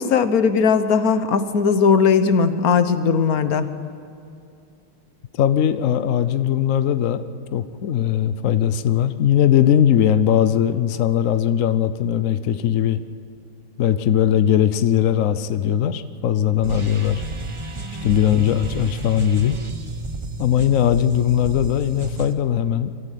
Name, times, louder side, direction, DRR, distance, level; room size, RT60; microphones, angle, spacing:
voice 1, 0.0-3.7 17.8-18.1, left 5 dB, 55° left, 11 dB, 1.2 m, -18 dB
voice 2, 5.4-7.2 7.5-13.0 13.8-17.2 18.0-19.6 20.4-22.9, left 10 dB, 85° left, 12 dB, 0.7 m, -19 dB
sound 1, 16.6-22.3, right 2 dB, 30° right, 0.5 m, -32 dB
24.5 x 14.5 x 9.2 m, 2.5 s
omnidirectional pair, 2.3 m